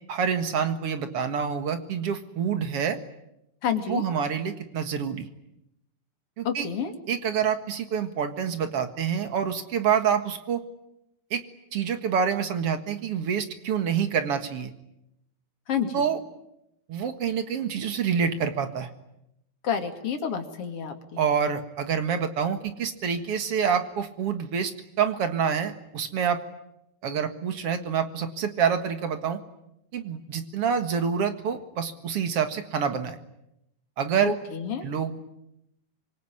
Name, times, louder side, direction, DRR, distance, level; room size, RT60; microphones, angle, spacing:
voice 1, 0.1-3.0 3.9-5.3 6.4-6.7 7.1-10.6 11.3-11.4 11.7-14.7 15.9-16.2 16.9-18.9 21.2-24.7 25.0-26.4 27.0-29.4 29.9-33.2 34.0-34.3 34.8-35.2, right 7 dB, 50° right, 9 dB, 2.1 m, -27 dB
voice 2, 3.6-4.0 6.4-6.9 15.7-16.0 19.6-21.2 34.2-34.9, left 7 dB, 40° left, 6 dB, 3.0 m, -29 dB
26.0 x 23.0 x 9.9 m, 0.84 s
omnidirectional pair, 4.3 m